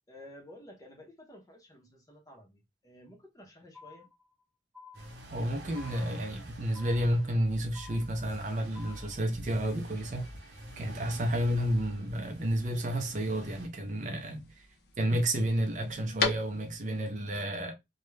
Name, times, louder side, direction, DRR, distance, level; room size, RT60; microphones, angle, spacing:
voice 1, 0.1-4.1, left 1 dB, 20° left, 0.6 m, -52 dB
sound 1, 3.7-4.4 4.7-5.4 5.7-6.4 6.7-7.4 7.7-8.4 8.7-9.3, left 5 dB, 20° right, 0.9 m, -52 dB
sound 2, 4.9-13.7, right 1 dB, 85° right, 0.7 m, -47 dB
voice 2, 5.3-10.3 10.8-14.7 15.0-17.7, equal, 45° right, 0.5 m, -31 dB
sound 3, 8.5-17.0, left 5 dB, 65° left, 0.6 m, -41 dB
2.3 x 2.1 x 3.1 m
head